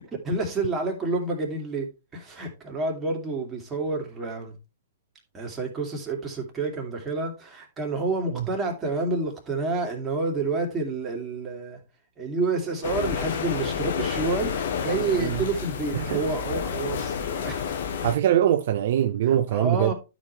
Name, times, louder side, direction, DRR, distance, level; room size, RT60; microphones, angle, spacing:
voice 1, 0.2-1.9 2.1-4.5 5.3-11.8 12.2-17.7 19.2-19.9, right 3 dB, 20° right, 2.7 m, -29 dB
sound 1, 12.8-18.1, left 7 dB, 60° left, 1.5 m, -30 dB
voice 2, 18.0-19.9, right 11 dB, 55° right, 0.6 m, -22 dB
12.0 x 5.2 x 3.2 m
figure-of-eight pair, 110°, 0 cm